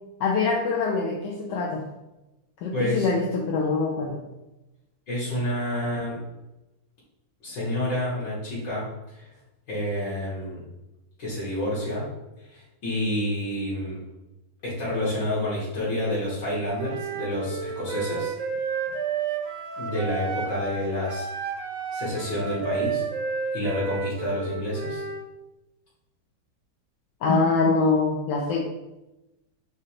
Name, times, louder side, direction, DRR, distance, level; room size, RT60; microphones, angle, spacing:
voice 1, 0.2-1.8 2.6-4.2 27.2-28.6, left 4 dB, 75° left, -2 dB, 1.1 m, -24 dB
voice 2, 2.7-3.1 5.1-6.2 7.4-9.3 9.7-10.6 11.2-12.1 12.4-14.0 14.6-18.3 19.8-21.3 21.9-23.0 23.5-25.0, left 1 dB, 60° left, -8 dB, 2.0 m, -29 dB
Wind instrument woodwind instrument, 16.8-20.8 21.1-25.3, right 6 dB, 75° right, 0.8 m, -31 dB
6.3 x 2.5 x 2.8 m, 0.98 s
omnidirectional pair, 2.2 m